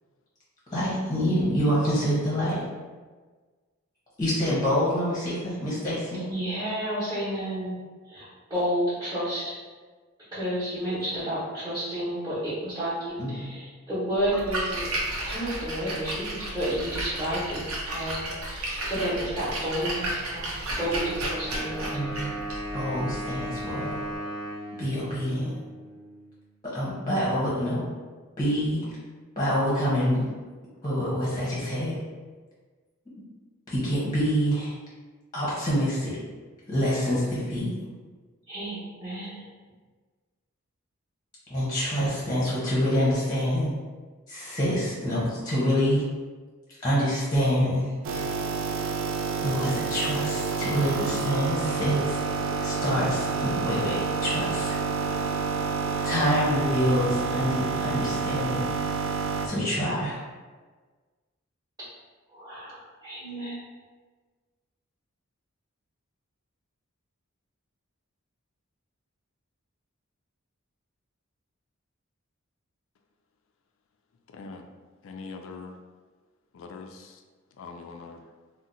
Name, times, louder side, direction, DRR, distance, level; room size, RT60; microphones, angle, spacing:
voice 1, 0.7-2.6 4.2-6.3 13.2-13.5 21.9-22.3 22.7-24.0 24.8-25.5 26.6-27.9 28.4-28.8 29.4-30.2 30.8-32.0 33.7-34.7 35.3-36.1 36.7-37.7 41.5-43.7 44.3-46.0 46.8-48.2 49.4-52.2 52.6-54.7 56.0-58.7 59.4-60.2, equal, 20° left, -8 dB, 0.8 m, -26 dB
voice 2, 6.3-7.8 8.1-9.6 10.3-14.9 15.3-17.7 17.9-20.5 20.8-22.0 38.5-39.3 62.3-63.6, equal, 20° right, -14 dB, 1.0 m, -31 dB
Splash splatter, 14.2-24.1, right 1 dB, 85° right, 0.7 m, -33 dB
Wind instrument woodwind instrument, 20.7-26.4, right 1 dB, 45° right, 1.1 m, -37 dB
sound 1, 48.0-59.5, right 5 dB, 65° right, 0.3 m, -29 dB
voice 3, 74.3-74.7 75.0-75.8 76.5-77.2 77.6-78.2, left 4 dB, 65° left, 5 dB, 0.3 m, -42 dB
2.6 x 2.1 x 3.8 m, 1.4 s
head